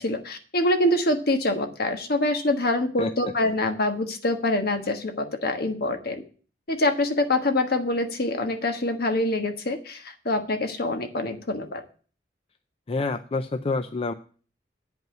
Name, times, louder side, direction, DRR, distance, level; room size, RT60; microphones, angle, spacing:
voice 1, 0.0-6.2 6.7-11.8, left 1 dB, 60° left, 6 dB, 1.4 m, -25 dB
voice 2, 3.0-3.3 12.9-14.1, left 3 dB, 35° left, 9 dB, 0.5 m, -27 dB
9.0 x 5.5 x 7.7 m, 0.40 s
head